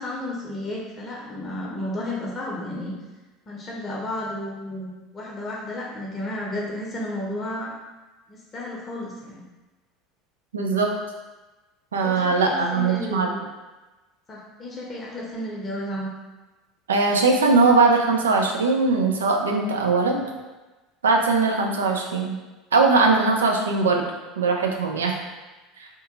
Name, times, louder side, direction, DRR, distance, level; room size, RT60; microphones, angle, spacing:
voice 1, 0.0-2.9 3.5-7.7 8.3-9.4 12.0-13.4 14.3-16.1, left 1 dB, 30° left, -4 dB, 0.7 m, -32 dB
voice 2, 10.5-10.9 11.9-13.3 16.9-20.2 21.0-22.4 22.7-24.1 24.4-25.1, right 4 dB, 75° right, 2 dB, 0.4 m, -20 dB
2.7 x 2.5 x 3.5 m, 1.2 s
figure-of-eight pair, 70°, 0 cm